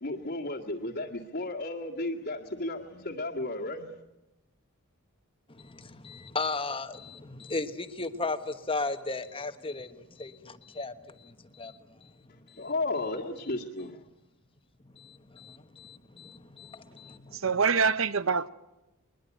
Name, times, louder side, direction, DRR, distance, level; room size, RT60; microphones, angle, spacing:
voice 1, 0.0-3.9 12.6-14.0, left 2 dB, 50° left, 2.0 m, -33 dB
voice 2, 5.5-12.1 12.5-12.7 13.4-13.6 14.9-17.4, left 3 dB, 25° left, 1.3 m, -36 dB
voice 3, 17.3-18.5, right 5 dB, 60° right, 0.8 m, -25 dB
22.0 x 21.0 x 9.2 m
head